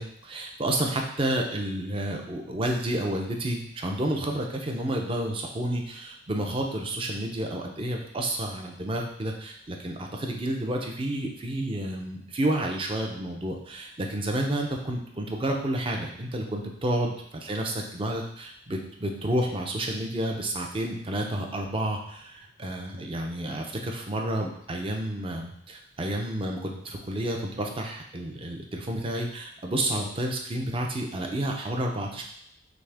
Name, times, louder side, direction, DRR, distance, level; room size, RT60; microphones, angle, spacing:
voice 1, 0.0-32.2, right 1 dB, 30° right, 2 dB, 0.6 m, -30 dB
6.0 x 2.2 x 3.4 m, 0.76 s
head